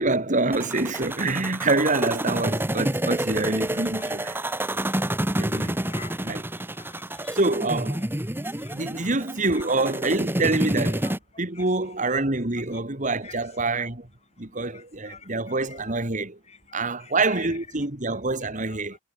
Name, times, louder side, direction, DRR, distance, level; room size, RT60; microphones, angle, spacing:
voice 1, 0.0-4.4 4.7-4.8 5.4-5.8 6.2-6.4 7.3-8.0 8.7-11.1 11.4-14.1 14.4-16.4 16.7-19.0, right 2 dB, 40° right, 2.5 m, -26 dB
sound 1, 0.5-11.2, right 1 dB, 10° right, 1.8 m, -28 dB
voice 2, 4.0-5.2 5.5-7.4 8.6-9.1 9.5-9.6 11.0-11.1 11.6-11.7 12.7-12.8 13.2-13.4 14.7-15.9 16.5-17.5 18.7-18.8, left 5 dB, 35° left, 7.2 m, -48 dB
head